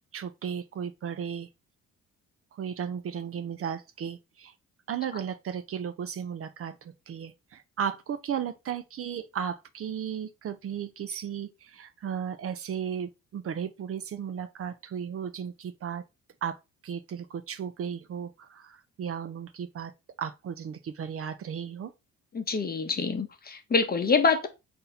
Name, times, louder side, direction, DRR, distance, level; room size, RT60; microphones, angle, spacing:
voice 1, 0.1-1.5 2.5-4.5 4.9-16.0 16.4-16.6 16.8-19.9 20.2-21.9, right 8 dB, 50° right, 0.5 m, -35 dB
voice 2, 22.3-24.5, left 4 dB, 30° left, 0.8 m, -25 dB
4.1 x 2.7 x 3.9 m
cardioid pair, 90°, 30 cm